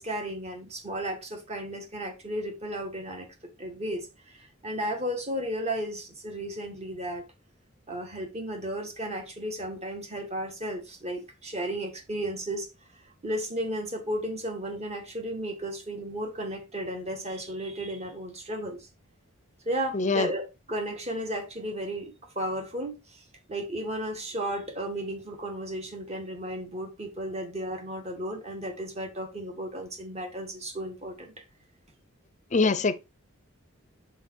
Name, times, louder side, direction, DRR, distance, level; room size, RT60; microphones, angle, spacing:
voice 1, 0.0-3.3 3.6-7.2 7.9-12.7 13.2-18.9 19.7-23.0 23.5-31.3, right 1 dB, 35° right, 1.9 m, -34 dB
voice 2, 19.9-20.3 32.5-33.1, left 3 dB, 35° left, 0.6 m, -24 dB
5.2 x 4.9 x 4.7 m
head